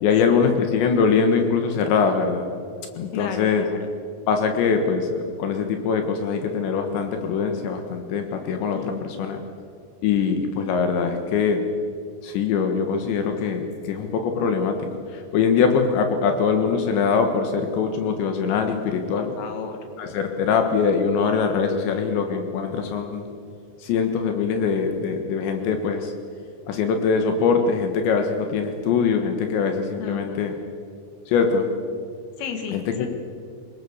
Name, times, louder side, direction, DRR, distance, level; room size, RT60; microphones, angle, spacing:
voice 1, 0.0-2.5 3.0-3.6 4.3-9.4 10.0-11.6 12.2-19.3 20.0-23.3 23.8-26.1 26.7-30.6 31.3-31.7 32.7-33.1, left 5 dB, 80° left, 5 dB, 3.8 m, -22 dB
voice 2, 3.1-3.9 8.7-9.1 19.1-19.8 30.0-30.4 32.4-33.1, left 6 dB, 65° left, 5 dB, 4.0 m, -33 dB
25.5 x 21.5 x 7.2 m, 2.2 s
omnidirectional pair, 5.1 m